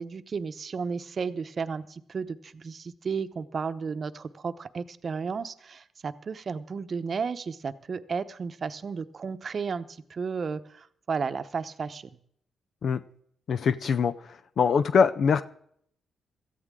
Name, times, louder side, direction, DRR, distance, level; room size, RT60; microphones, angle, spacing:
voice 1, 0.0-12.1, right 5 dB, 50° right, 12 dB, 0.8 m, -33 dB
voice 2, 13.5-14.1 14.6-15.4, left 6 dB, 65° left, 12 dB, 0.5 m, -22 dB
17.0 x 14.0 x 3.7 m, 0.68 s
cardioid pair, 75°, 0 cm